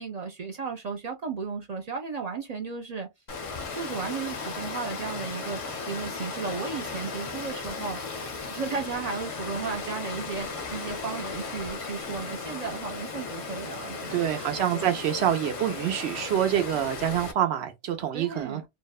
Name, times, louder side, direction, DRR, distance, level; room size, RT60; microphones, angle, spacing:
voice 1, 0.0-3.1 3.7-14.9 18.1-18.6, right 5 dB, 55° right, 0.5 m, -35 dB
Water, 3.3-17.3, left 4 dB, 45° left, 0.5 m, -36 dB
voice 2, 14.1-18.6, right 10 dB, 80° right, 0.9 m, -26 dB
2.7 x 2.1 x 2.3 m
omnidirectional pair, 1.1 m